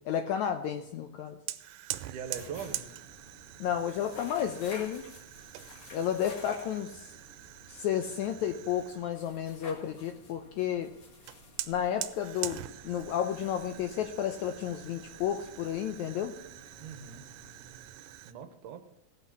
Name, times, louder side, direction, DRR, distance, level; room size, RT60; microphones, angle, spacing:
voice 1, 0.1-1.4 3.6-5.1 5.9-7.1 7.7-10.9 11.7-16.3, left 9 dB, 80° left, 7 dB, 1.7 m, -32 dB
Fire, 1.5-9.1 11.3-18.3, right 14 dB, 90° right, 2.4 m, -44 dB
sound 1, 2.1-18.2, left 2 dB, 45° left, 2.5 m, -53 dB
voice 2, 2.1-2.8 16.8-17.2 18.2-18.9, right 8 dB, 70° right, 8 dB, 2.2 m, -41 dB
17.5 x 5.8 x 7.0 m, 0.84 s
omnidirectional pair, 4.0 m